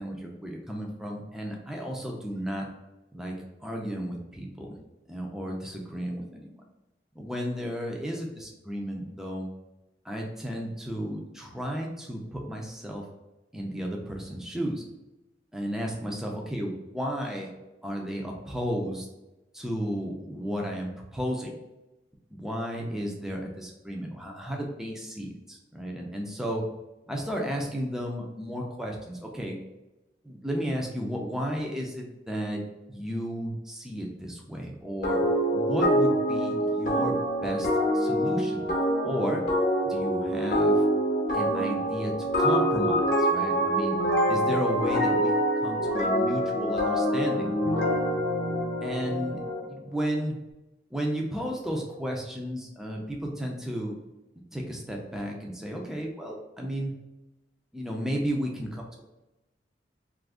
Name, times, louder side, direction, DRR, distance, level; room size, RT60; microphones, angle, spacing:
voice 1, 0.0-2.7 3.1-3.3 3.6-4.8 5.1-6.5 7.2-9.5 10.0-13.0 13.5-14.8 15.5-17.5 17.8-19.1 19.5-21.6 22.3-26.6 27.1-29.6 30.2-32.6 32.9-35.2 35.5-37.7 37.9-38.7 39.0-39.4 39.8-40.8 41.3-44.0 44.3-45.3 45.6-47.5 48.8-50.4 50.9-53.9 54.5-56.9 57.7-59.0, equal, 5° right, 0 dB, 0.4 m, -33 dB
sound 1, 35.0-49.6, equal, 50° left, 0.7 m, -25 dB
2.7 x 2.5 x 3.4 m, 1.0 s
head